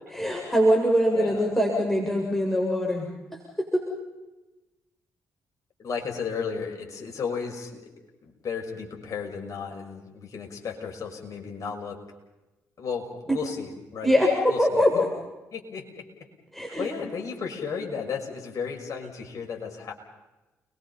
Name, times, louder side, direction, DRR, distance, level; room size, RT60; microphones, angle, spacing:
voice 1, 0.1-3.8 14.0-15.1 16.5-16.9, equal, 5° left, -1 dB, 7.2 m, -23 dB
voice 2, 5.8-7.9 8.2-12.0 12.8-14.1 14.5-15.0 15.5-15.9 16.8-19.9, left 6 dB, 50° left, 1 dB, 6.4 m, -34 dB
30.0 x 23.0 x 5.7 m, 1.1 s
hypercardioid pair, 40°, 7 cm